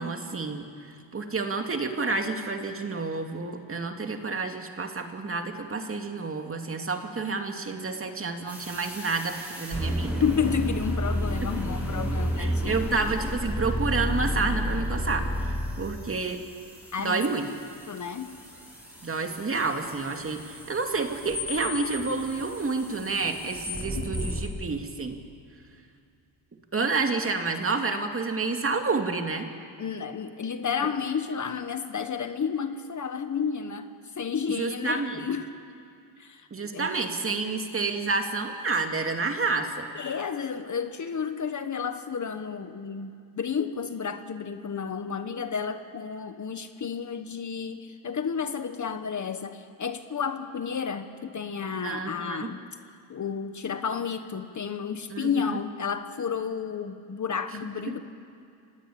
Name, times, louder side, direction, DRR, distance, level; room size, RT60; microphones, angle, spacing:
voice 1, 0.0-10.2 12.4-16.4 17.0-17.5 19.0-25.2 26.7-29.5 34.6-35.3 36.5-39.9 51.8-52.5 55.1-55.6, right 4 dB, 25° right, 4 dB, 2.5 m, -29 dB
sound 1, 8.5-24.4, equal, 5° right, 7.2 m, -32 dB
voice 2, 10.2-12.8 16.9-17.2 17.9-18.3 24.0-24.1 29.8-35.5 36.2-36.5 36.7-36.9 39.9-52.6 53.1-58.0, left 6 dB, 35° left, 9 dB, 1.4 m, -31 dB
29.5 x 18.5 x 8.8 m, 2.4 s
cardioid pair, 105°, 48 cm